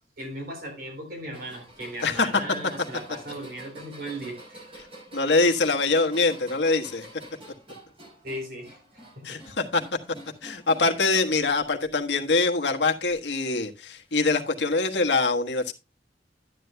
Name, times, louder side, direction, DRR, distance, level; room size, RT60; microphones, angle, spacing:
voice 1, 0.2-4.7 8.2-9.4, right 1 dB, 55° right, 4 dB, 3.7 m, -37 dB
sound 1, 1.3-11.0 11.4-12.0 13.1-13.2 14.3-14.4, right 1 dB, 35° right, 4.3 m, -47 dB
voice 2, 2.0-2.4 5.1-7.1 9.2-9.8 10.4-15.7, left 3 dB, 80° left, 3 dB, 1.3 m, -24 dB
12.0 x 9.7 x 2.2 m, 0.26 s
head